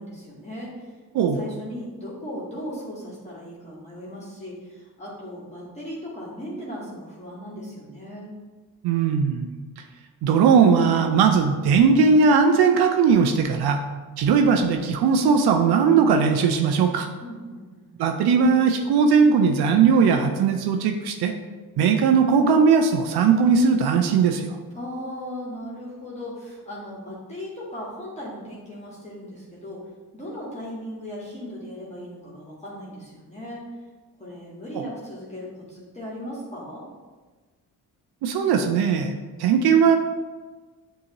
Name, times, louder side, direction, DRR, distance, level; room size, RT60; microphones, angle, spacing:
voice 1, 0.0-1.0 1.3-8.3 17.2-17.9 24.7-29.9 30.1-33.6 34.2-36.8, equal, 15° left, -6 dB, 1.4 m, -37 dB
voice 2, 8.8-9.5 10.2-13.8 14.2-17.1 18.0-21.3 21.8-24.6 34.7-34.8 38.2-40.0, right 5 dB, 80° right, 5 dB, 0.5 m, -19 dB
6.3 x 2.8 x 2.9 m, 1.3 s
cardioid pair, 75°, 38 cm